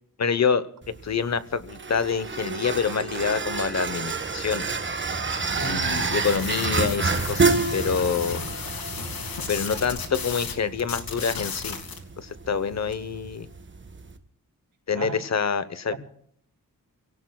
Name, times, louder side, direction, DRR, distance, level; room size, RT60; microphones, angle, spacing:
voice 1, 0.2-0.6 1.0-4.6 5.6-8.4 9.5-11.8 12.2-13.5 14.9-15.9, left 6 dB, 50° left, 13 dB, 1.0 m, -26 dB
sound 1, 0.8-14.2, right 4 dB, 35° right, 1.3 m, -29 dB
voice 2, 5.5-6.1 14.9-15.2 15.9-16.0, right 4 dB, 70° right, -1 dB, 4.3 m, -35 dB
sound 2, 6.2-10.5 10.8-12.0, left 5 dB, 80° left, 2.5 m, -34 dB
28.0 x 17.5 x 2.3 m, 0.65 s
wide cardioid pair, 125°, 35 cm